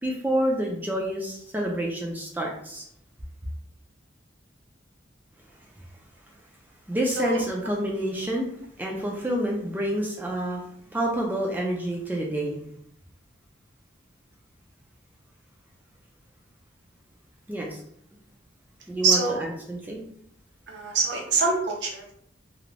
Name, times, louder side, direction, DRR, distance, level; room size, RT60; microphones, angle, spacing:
voice 1, 0.0-2.8 6.9-8.5 8.8-10.6 10.9-12.6 17.5-17.8 18.9-20.0, right 1 dB, 10° right, -1 dB, 0.3 m, -28 dB
voice 2, 19.0-19.4 20.7-22.1, right 4 dB, 65° right, 0 dB, 0.6 m, -24 dB
2.4 x 2.0 x 3.1 m, 0.67 s
head